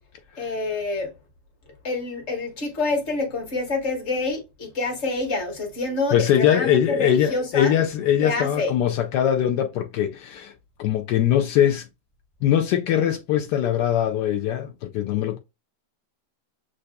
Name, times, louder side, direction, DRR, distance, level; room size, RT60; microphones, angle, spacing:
voice 1, 0.4-1.1 1.8-7.7 8.2-8.7, left 3 dB, 45° left, 1.6 m, -27 dB
voice 2, 6.1-10.5 10.8-11.9 12.4-15.4, left 10 dB, 80° left, 1.2 m, -22 dB
7.6 x 2.6 x 2.2 m
omnidirectional pair, 1.8 m